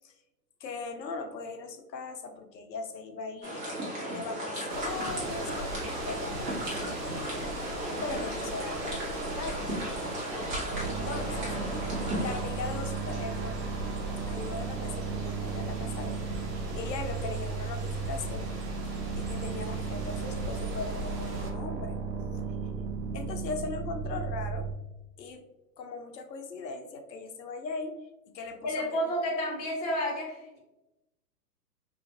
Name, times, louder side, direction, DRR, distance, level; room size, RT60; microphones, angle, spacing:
voice 1, 0.6-3.7 4.1-7.1 8.0-9.7 10.8-11.5 12.2-13.7 14.3-16.3 16.7-18.5 19.2-22.0 23.1-24.7 25.2-25.4 25.8-28.0 28.3-28.7, left 4 dB, 85° left, 6 dB, 0.6 m, -39 dB
sound 1, 3.4-12.4, equal, 20° right, 0.8 m, -35 dB
sound 2, 4.7-21.5, right 2 dB, 55° right, 0.8 m, -40 dB
sound 3, 10.7-24.7, right 5 dB, 85° right, 0.6 m, -35 dB
voice 2, 28.6-30.6, equal, 25° left, -1 dB, 0.5 m, -31 dB
2.5 x 2.3 x 2.7 m, 0.97 s
hypercardioid pair, 120°, 49 cm